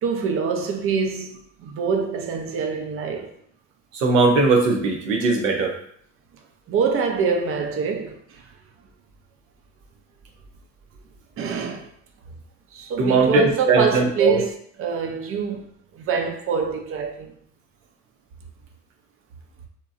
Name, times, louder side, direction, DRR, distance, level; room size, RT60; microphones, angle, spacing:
voice 1, 0.0-3.3 6.7-8.4 11.4-11.9 12.7-14.5 14.8-15.7 15.9-17.3, right 6 dB, 35° right, 0.5 m, -25 dB
voice 2, 3.9-5.8 13.0-14.4, right 3 dB, 85° right, 0.7 m, -19 dB
2.7 x 2.2 x 2.4 m
hypercardioid pair, 70°, 38 cm